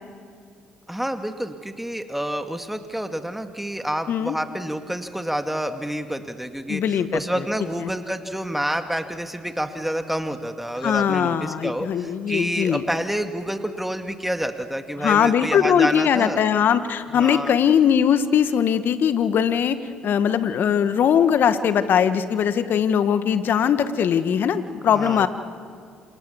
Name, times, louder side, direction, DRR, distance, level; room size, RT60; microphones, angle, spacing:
voice 1, 0.9-16.4 17.1-17.6 24.9-25.3, equal, 5° right, 7 dB, 2.2 m, -28 dB
voice 2, 6.7-7.4 10.8-12.8 15.0-19.8 20.0-25.3, left 8 dB, 60° left, 11 dB, 1.5 m, -20 dB
29.5 x 27.5 x 7.1 m, 2.3 s
hypercardioid pair, 55°, 4 cm